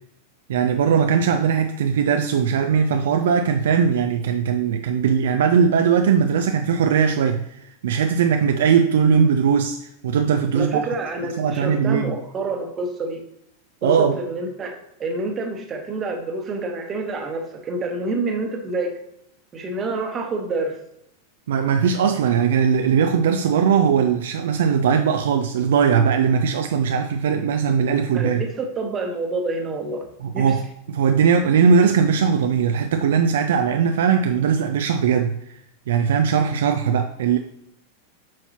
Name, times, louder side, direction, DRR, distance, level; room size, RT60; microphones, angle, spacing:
voice 1, 0.5-7.5 7.8-9.8 10.0-10.9 11.2-12.2 13.8-14.2 21.5-28.4 30.2-35.4 35.9-37.4, right 6 dB, 60° right, 0.4 m, -19 dB
voice 2, 10.5-13.2 13.8-18.9 19.5-20.8 28.1-30.1 30.3-30.6, right 2 dB, 25° right, 1.2 m, -27 dB
7.6 x 5.6 x 2.9 m
figure-of-eight pair, 90°, 0 cm